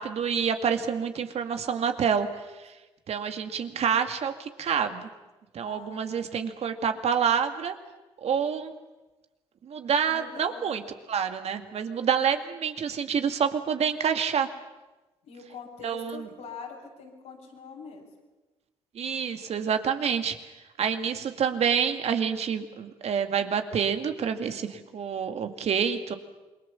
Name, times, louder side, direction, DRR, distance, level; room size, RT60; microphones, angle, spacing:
voice 1, 0.0-2.3 2.6-2.7 3.1-5.1 5.5-7.7 8.2-8.7 9.6-10.8 11.1-14.5 15.8-16.3 18.9-20.4 20.8-26.2, right 7 dB, 55° right, 7 dB, 2.3 m, -27 dB
voice 2, 5.6-6.4 10.1-10.7 15.2-18.0, left 4 dB, 75° left, -2 dB, 6.6 m, -43 dB
28.0 x 22.0 x 7.2 m, 1.1 s
hypercardioid pair, 50°, 13 cm